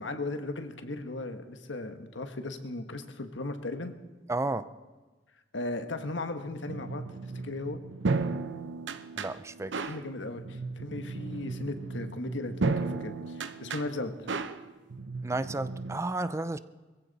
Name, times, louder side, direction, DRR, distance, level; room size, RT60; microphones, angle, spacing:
voice 1, 0.0-3.9 5.5-7.0 7.4-7.8 9.8-14.1, left 2 dB, 90° left, 1.4 m, -36 dB
voice 2, 4.3-4.7 9.2-9.7 15.2-16.6, right 2 dB, 15° right, 0.5 m, -32 dB
sound 1, 6.7-16.0, right 3 dB, 80° right, 0.7 m, -34 dB
22.0 x 15.0 x 4.1 m
head